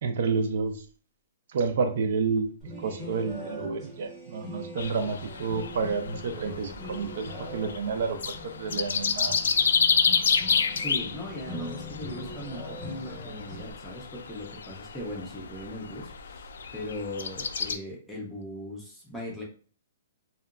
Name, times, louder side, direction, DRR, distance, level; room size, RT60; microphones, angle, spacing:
voice 1, 0.0-0.8 1.5-9.4, right 5 dB, 55° right, 7 dB, 0.5 m, -30 dB
sound 1, 2.6-13.7, left 1 dB, 15° right, 0.9 m, -42 dB
sound 2, 4.8-17.8, left 6 dB, 85° left, 0.3 m, -30 dB
voice 2, 10.7-19.4, equal, 5° left, -4 dB, 0.5 m, -39 dB
2.7 x 2.2 x 2.4 m, 0.42 s
hypercardioid pair, 165°, 0 cm